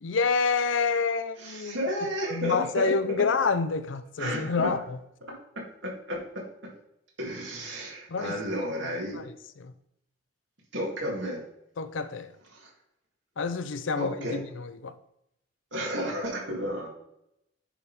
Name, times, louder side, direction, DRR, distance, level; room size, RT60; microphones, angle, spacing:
voice 1, 0.0-1.8 2.3-4.8 8.1-8.4 9.1-9.2 9.6-9.7 11.8-12.3 13.4-14.9, left 4 dB, 75° left, 0.5 m, -28 dB
voice 2, 1.4-3.0 4.2-4.8 5.3-6.7 7.2-9.2 10.7-11.4 12.5-12.7 14.0-14.4 15.7-16.9, equal, 70° right, 2.4 m, -32 dB
10.0 x 3.7 x 4.3 m
head